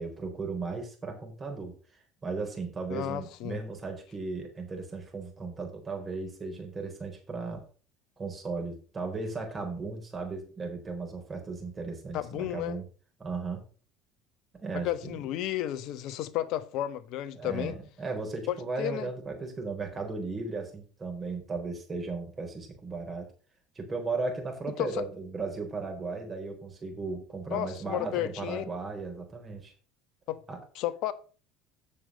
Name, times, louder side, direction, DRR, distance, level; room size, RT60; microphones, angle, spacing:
voice 1, 0.0-7.6 8.2-12.8 13.2-13.6 14.6-15.2 17.4-23.3 23.8-29.7 30.5-30.6, right 3 dB, 30° right, 4.2 m, -36 dB
voice 2, 2.9-3.6 12.1-12.8 14.7-17.8 18.5-19.1 24.8-25.0 27.5-28.6 30.3-30.4 30.7-31.1, left 13 dB, 65° left, 1.1 m, -32 dB
8.6 x 6.6 x 6.2 m
hypercardioid pair, 75°, 0 cm